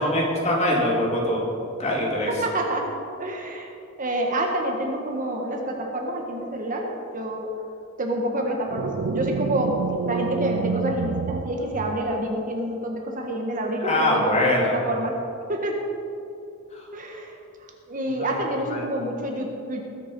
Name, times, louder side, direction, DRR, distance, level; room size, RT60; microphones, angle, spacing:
voice 1, 0.0-1.5 1.8-2.3 13.8-14.7 16.7-16.8 18.2-18.3 18.7-18.8, left 1 dB, 35° left, -3 dB, 2.8 m, -23 dB
voice 2, 2.4-2.9 3.2-3.7 4.0-7.5 8.0-9.8 10.0-15.2 15.5-15.8 16.9-17.3 17.9-19.8, right 1 dB, 40° right, 1 dB, 1.6 m, -28 dB
sound 1, 8.7-12.4, right 6 dB, 65° right, 0.4 m, -29 dB
20.5 x 7.0 x 5.4 m, 2.6 s
head